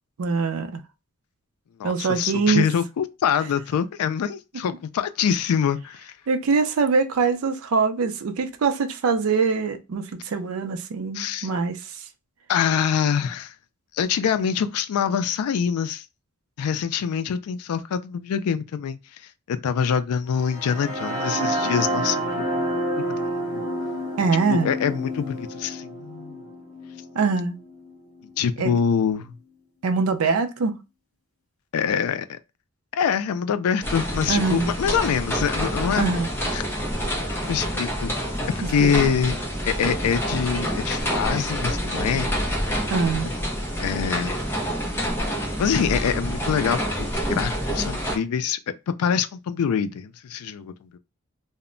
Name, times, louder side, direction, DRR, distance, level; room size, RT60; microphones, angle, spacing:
voice 1, 0.2-0.8 1.8-2.7 6.3-12.0 24.2-24.7 27.1-27.6 28.6-28.8 29.8-30.7 34.3-34.7 36.0-36.3 38.8-38.9 42.9-43.3, right 4 dB, 75° right, 0.4 m, -23 dB
voice 2, 1.8-6.1 11.1-11.5 12.5-13.5 13.9-16.1 16.6-19.2 19.5-22.7 22.9-23.6 24.5-26.4 28.4-29.3 31.7-32.4 32.9-36.1 36.5-36.6 37.5-38.1 38.7-39.4 39.7-42.3 43.8-44.4 45.6-48.6 49.0-51.0, left 7 dB, 85° left, 0.3 m, -25 dB
sound 1, 20.4-28.3, right 1 dB, 35° left, 0.8 m, -29 dB
sound 2, 33.8-48.2, equal, 10° left, 0.4 m, -27 dB
2.1 x 2.0 x 3.6 m
head